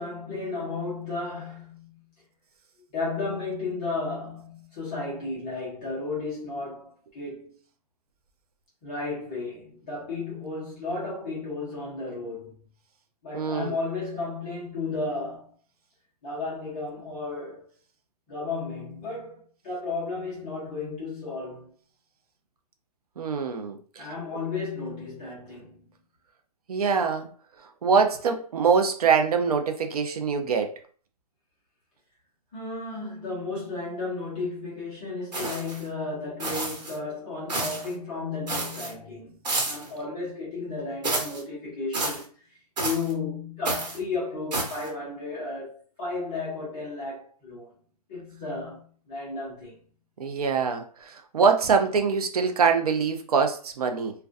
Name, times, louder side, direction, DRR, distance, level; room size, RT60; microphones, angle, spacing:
voice 1, 0.0-2.0 2.9-7.5 8.8-12.6 13.2-15.5 16.2-17.7 18.3-21.7 24.0-25.9 32.5-39.4 39.6-42.2 42.8-47.7 48.1-49.8, left 3 dB, 10° left, 0.5 m, -33 dB
voice 2, 13.3-13.7 23.2-24.1 26.7-27.3 27.8-30.7 50.2-54.1, right 5 dB, 65° right, 0.4 m, -24 dB
sound 1, 35.3-35.8 36.4-37.0 37.5-37.9 38.5-38.9 39.4-39.9 41.0-41.4 41.9-42.2 42.8-43.1 43.6-44.0 44.5-44.9, right 2 dB, 85° right, 1.1 m, -30 dB
2.3 x 2.2 x 2.4 m
hypercardioid pair, 175°, 21 cm